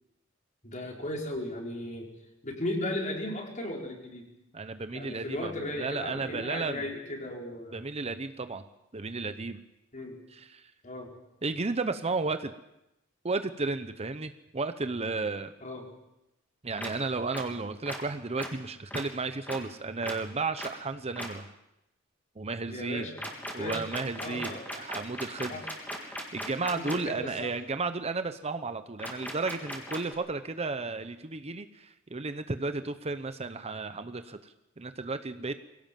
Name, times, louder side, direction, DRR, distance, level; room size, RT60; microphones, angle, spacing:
voice 1, 0.6-2.1 2.4-4.3 4.9-7.9 9.9-10.2 10.8-11.1 15.6-15.8 22.7-23.2 23.6-23.8 24.1-24.8 25.5-25.6 26.7-27.5 33.9-34.0, left 1 dB, 40° left, 0 dB, 4.5 m, -36 dB
voice 2, 4.5-6.9 7.7-8.7 8.9-9.6 10.3-10.7 11.4-12.5 13.2-15.5 16.6-21.5 22.4-23.1 23.5-25.6 26.0-35.5, right 3 dB, 30° right, 10 dB, 0.8 m, -33 dB
sound 1, 16.8-16.9 17.3-17.4 17.9-18.0 18.4-18.5 18.9-19.0 19.5-19.6 20.0-20.1 20.6-20.7 21.2-21.3 23.2-27.0 29.0-30.1, equal, 10° left, 3.4 m, -37 dB
23.0 x 17.0 x 7.5 m, 0.90 s
head